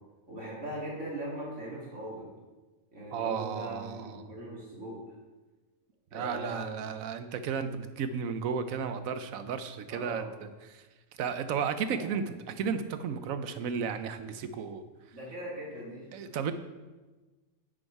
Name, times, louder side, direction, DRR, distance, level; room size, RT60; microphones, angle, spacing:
voice 1, 0.3-2.3 2.9-5.1 6.1-6.9 9.9-10.3 11.8-12.2 15.1-16.1, right 1 dB, 65° right, -5 dB, 2.8 m, -40 dB
voice 2, 3.1-4.2 6.1-10.2 10.7-10.8 11.2-14.8 16.1-16.5, right 6 dB, 90° right, 10 dB, 1.1 m, -33 dB
9.7 x 6.3 x 4.7 m, 1.2 s
omnidirectional pair, 1.4 m